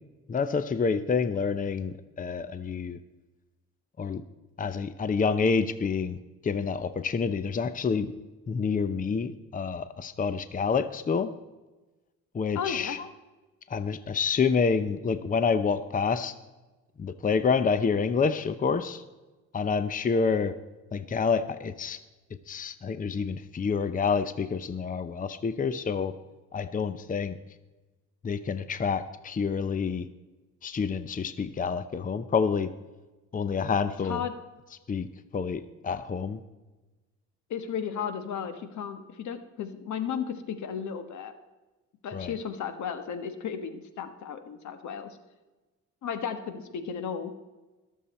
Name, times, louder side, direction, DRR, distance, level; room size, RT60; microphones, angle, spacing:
voice 1, 0.3-3.0 4.0-4.2 4.6-6.2 6.4-8.1 8.5-11.3 12.3-13.1 13.7-16.3 17.0-19.0 19.5-20.5 20.9-22.0 22.5-26.1 26.5-27.3 28.2-30.1 30.6-32.7 33.3-34.2 34.9-35.1 35.3-36.4 42.1-42.3, left 5 dB, 25° left, 12 dB, 0.7 m, -28 dB
voice 2, 12.5-13.0 20.1-20.2 34.0-34.3 37.5-41.3 42.0-45.2 46.0-47.3, left 7 dB, 70° left, 9 dB, 1.4 m, -34 dB
21.0 x 7.4 x 4.3 m, 1.1 s
cardioid pair, 90°, 30 cm